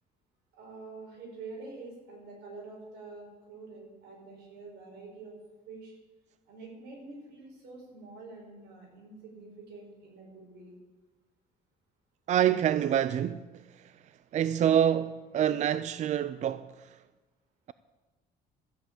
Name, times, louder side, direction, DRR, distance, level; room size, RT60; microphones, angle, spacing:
voice 1, 0.6-5.3 5.7-5.9 6.5-10.7, right 3 dB, 80° right, 5.8 m, -46 dB
voice 2, 12.3-17.0, right 10 dB, 45° right, 0.4 m, -27 dB
13.5 x 7.8 x 8.7 m
cardioid pair, 110°, 17 cm